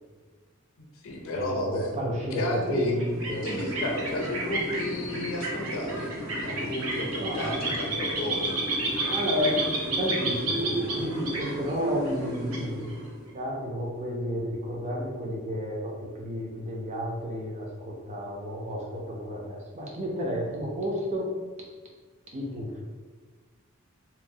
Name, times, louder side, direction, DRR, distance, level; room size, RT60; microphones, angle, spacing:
voice 1, 0.8-1.9 2.3-6.1 6.4-8.6, left 1 dB, 65° left, 1 dB, 0.5 m, -32 dB
voice 2, 1.3-3.5 7.2-7.6 9.0-12.9 13.3-21.3 22.3-22.8, equal, 35° right, -2 dB, 0.5 m, -31 dB
sound 1, 2.9-13.3, right 2 dB, 75° right, 0.6 m, -31 dB
3.0 x 2.1 x 2.6 m, 1.4 s
head